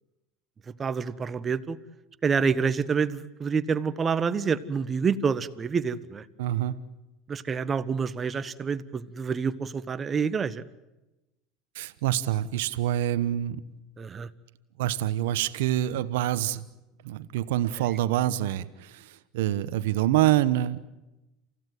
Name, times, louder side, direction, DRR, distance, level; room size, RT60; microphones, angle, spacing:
voice 1, 0.8-1.8 2.2-6.2 7.3-10.6 14.0-14.3, right 5 dB, 30° right, 14 dB, 1.3 m, -27 dB
voice 2, 6.4-6.7 11.7-13.6 14.8-16.6 17.0-20.8, right 13 dB, 80° right, 14 dB, 1.1 m, -26 dB
28.5 x 16.0 x 9.3 m, 0.99 s
hypercardioid pair, 90°, 0 cm